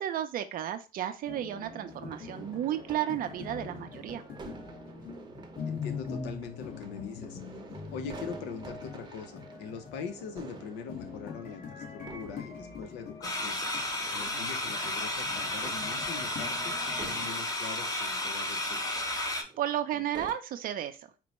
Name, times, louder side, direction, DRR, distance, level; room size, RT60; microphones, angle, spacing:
voice 1, 0.0-4.2 19.6-21.0, right 11 dB, 60° right, 0.5 m, -33 dB
sound 1, 1.3-17.3, left 5 dB, 55° left, 1.3 m, -43 dB
sound 2, 1.5-20.3, right 4 dB, 25° right, 0.7 m, -50 dB
voice 2, 5.7-7.4 7.9-13.6 14.1-18.8, left 6 dB, 90° left, 0.7 m, -42 dB
sound 3, 13.2-19.4, left 1 dB, 20° left, 0.7 m, -33 dB
4.5 x 2.1 x 4.0 m
cardioid pair, 110°, 17 cm